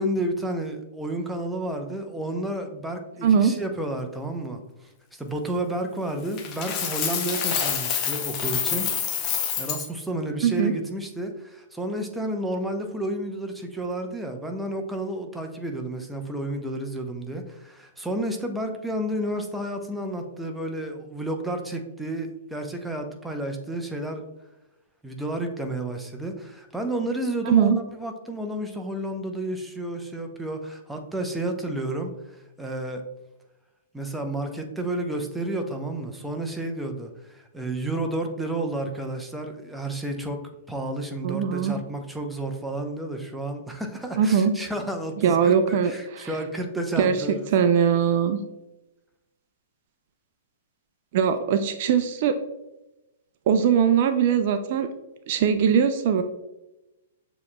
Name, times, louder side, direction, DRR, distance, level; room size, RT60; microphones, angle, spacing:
voice 1, 0.0-4.6 5.1-8.9 9.6-24.2 25.0-33.0 33.9-40.4 40.7-47.5, right 1 dB, 5° right, 3 dB, 0.6 m, -31 dB
voice 2, 3.2-3.6 10.4-10.7 27.5-27.8 41.2-41.8 44.2-44.5 45.2-46.3 47.0-48.4 51.1-52.4 53.5-54.9 55.3-56.2, right 7 dB, 50° right, 8 dB, 0.3 m, -21 dB
Coin (dropping), 6.4-9.9, left 8 dB, 35° left, 0.6 m, -27 dB
6.9 x 3.0 x 2.2 m, 0.96 s
figure-of-eight pair, 110°, 0 cm